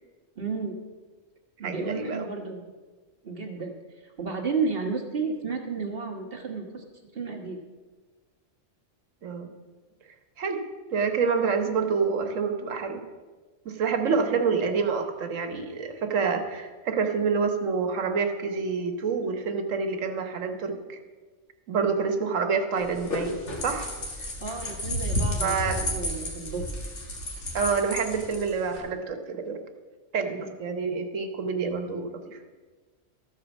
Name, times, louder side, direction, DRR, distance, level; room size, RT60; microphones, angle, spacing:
voice 1, 0.4-0.8 1.6-2.7 3.2-3.7 4.0-6.8 7.1-7.6 14.1-14.4 24.4-26.8 30.2-30.5, right 4 dB, 50° right, 2 dB, 1.5 m, -32 dB
voice 2, 1.6-2.3 9.2-9.5 10.4-10.6 10.9-13.0 13.6-21.0 21.7-23.3 23.6-23.9 24.2-24.3 25.4-25.9 27.5-29.6 30.1-32.4, right 5 dB, 80° right, 7 dB, 1.4 m, -27 dB
sound 1, 22.8-28.8, left 1 dB, 65° left, 2.0 m, -32 dB
13.5 x 4.8 x 7.0 m, 1.4 s
omnidirectional pair, 1.3 m